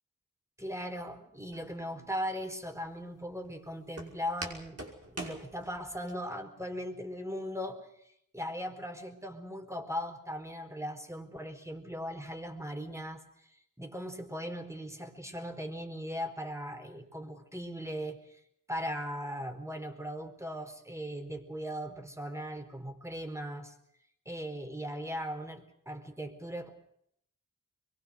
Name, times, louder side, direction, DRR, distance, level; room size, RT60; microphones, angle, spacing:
voice 1, 0.6-4.8 5.1-7.9 8.3-18.4 18.7-23.7 24.3-26.7, equal, 10° right, 6 dB, 4.4 m, -39 dB
Walk footsteps, 1.5-6.1, right 2 dB, 45° right, 5.7 m, -45 dB
24.0 x 23.0 x 6.5 m, 0.71 s
cardioid pair, 45°, 34 cm